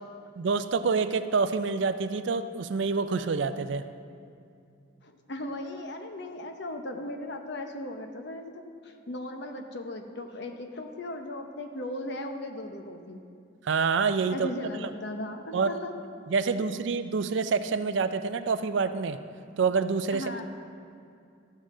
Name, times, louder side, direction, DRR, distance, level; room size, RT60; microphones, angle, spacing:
voice 1, 0.4-3.8 13.6-14.5 14.8-14.9 15.5-15.7 16.3-19.2 19.6-20.2, right 5 dB, 65° right, 11 dB, 0.4 m, -27 dB
voice 2, 5.0-13.2 14.3-15.9 16.4-16.6 20.1-20.4, left 1 dB, 60° left, 5 dB, 0.8 m, -37 dB
13.0 x 7.4 x 3.7 m, 2.4 s
head